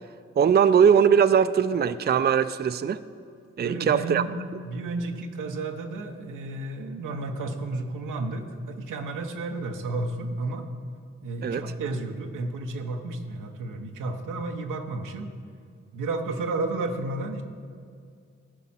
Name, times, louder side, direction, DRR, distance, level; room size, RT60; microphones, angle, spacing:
voice 1, 0.4-3.0 3.6-4.2 11.4-11.6, right 7 dB, 35° right, 12 dB, 0.4 m, -20 dB
voice 2, 3.6-4.3 4.6-10.7 11.2-15.3 15.9-17.4, right 2 dB, 90° right, 4 dB, 0.9 m, -32 dB
15.0 x 5.1 x 5.7 m, 2.3 s
supercardioid pair, 40°, 30 cm